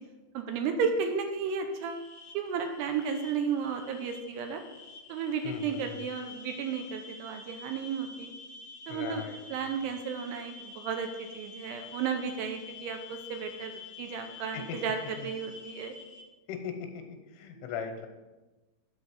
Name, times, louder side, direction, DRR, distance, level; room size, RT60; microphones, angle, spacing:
voice 1, 0.3-2.1 2.3-4.6 5.1-8.3 8.9-15.9 17.6-17.7, right 6 dB, 80° right, 6 dB, 2.5 m, -33 dB
sound 1, 1.7-16.2, left 4 dB, 70° left, 3.0 m, -48 dB
voice 2, 5.4-6.0 8.9-9.7 14.5-14.8 15.2-15.3 16.5-17.0 17.3-18.1, left 7 dB, 90° left, 5 dB, 3.4 m, -39 dB
9.7 x 4.1 x 7.1 m, 1.1 s
omnidirectional pair, 5.4 m